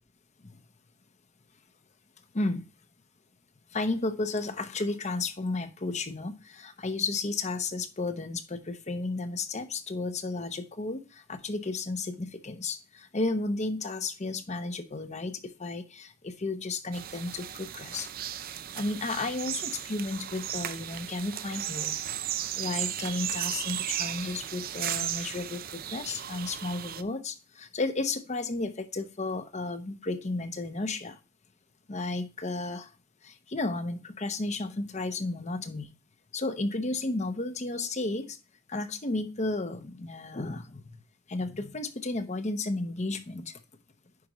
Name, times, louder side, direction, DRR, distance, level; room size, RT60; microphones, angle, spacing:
voice 1, 2.3-2.7 3.7-18.1 18.7-22.0 22.6-31.2 31.9-32.9 33.2-35.9 36.3-38.4 38.7-40.8 41.3-43.6, left 3 dB, 35° left, 9 dB, 0.9 m, -33 dB
sound 1, 16.9-27.0, right 11 dB, 45° right, 0.5 m, -35 dB
9.6 x 5.3 x 3.0 m, 0.31 s
head